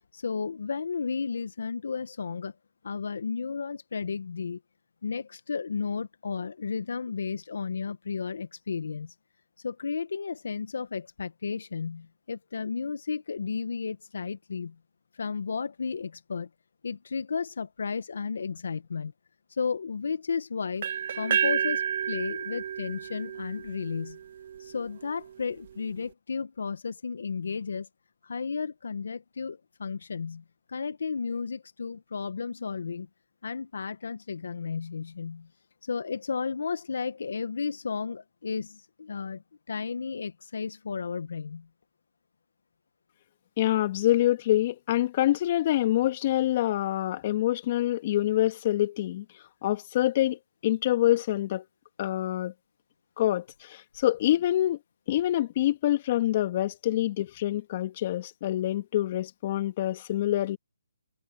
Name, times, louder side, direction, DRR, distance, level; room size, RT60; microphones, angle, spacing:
voice 1, 0.1-2.5 2.8-4.6 5.0-9.1 9.6-14.7 15.1-16.5 16.8-19.1 19.5-20.9 21.1-24.2 24.6-27.9 28.2-33.1 33.4-35.5 35.8-41.7, left 5 dB, 65° left, 1.5 m, -33 dB
sound 1, 20.8-24.7, right 8 dB, 50° right, 1.7 m, -30 dB
voice 2, 43.6-49.2 49.6-51.6 52.0-52.5 53.2-54.8 55.1-60.6, left 14 dB, 35° left, 2.4 m, -26 dB
hypercardioid pair, 155°, 0 cm